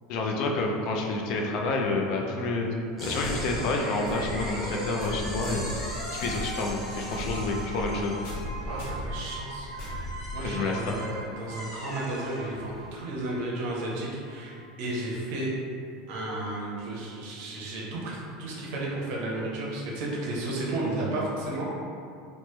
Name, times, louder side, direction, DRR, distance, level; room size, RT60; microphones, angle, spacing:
voice 1, 0.1-2.7 3.0-8.2 10.4-11.0, left 3 dB, 45° left, 0 dB, 0.3 m, -29 dB
sound 1, 3.0-12.9, equal, 5° left, 0.7 m, -39 dB
sound 2, 3.2-10.9, equal, 90° left, 1.1 m, -37 dB
sound 3, 3.3-14.7, right 3 dB, 65° left, 0.9 m, -45 dB
voice 2, 8.7-10.0 10.3-15.5 16.1-21.7, right 2 dB, 55° right, -4 dB, 0.6 m, -33 dB
3.0 x 2.0 x 3.2 m, 2.5 s
supercardioid pair, 175°, 0 cm